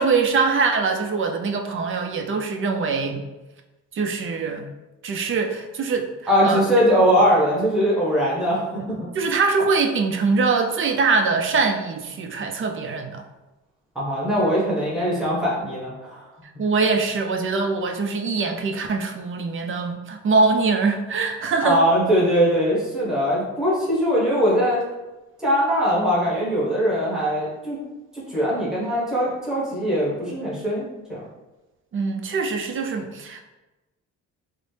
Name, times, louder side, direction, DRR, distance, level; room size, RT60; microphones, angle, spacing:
voice 1, 0.0-3.3 3.9-4.7 5.0-6.1 6.4-6.6 8.7-8.8 9.1-13.2 16.6-21.8 31.9-33.4, right 4 dB, 45° right, 4 dB, 0.5 m, -23 dB
voice 2, 6.3-9.1 13.9-16.2 21.6-24.8 25.4-27.8 28.1-30.8 31.1-31.2, equal, ahead, -7 dB, 1.2 m, -21 dB
4.1 x 2.1 x 3.3 m, 1.1 s
cardioid pair, 90°, 30 cm